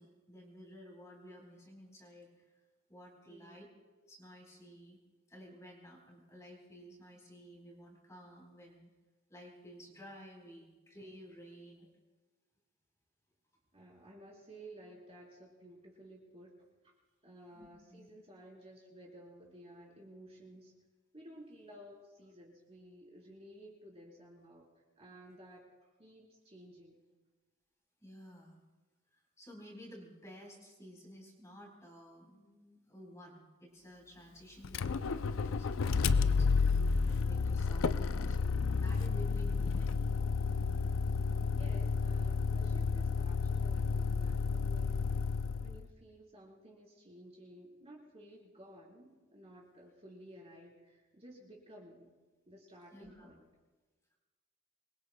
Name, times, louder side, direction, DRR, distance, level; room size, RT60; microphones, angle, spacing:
voice 1, 0.0-2.4 2.9-3.6 4.1-5.0 5.3-8.9 9.3-12.0 17.5-18.1 28.0-28.6 29.1-38.4 38.8-40.0 52.9-53.3, equal, 15° left, -1 dB, 4.0 m, -53 dB
voice 2, 3.3-3.7 13.7-16.6 16.8-16.9 17.2-20.7 21.1-24.7 25.0-27.0 41.5-45.3 45.6-52.1 52.5-53.4, right 1 dB, 30° right, -3 dB, 3.8 m, -55 dB
Motor vehicle (road), 34.6-45.8, left 5 dB, 80° left, 0.5 m, -31 dB
26.5 x 22.0 x 2.2 m, 1.2 s
head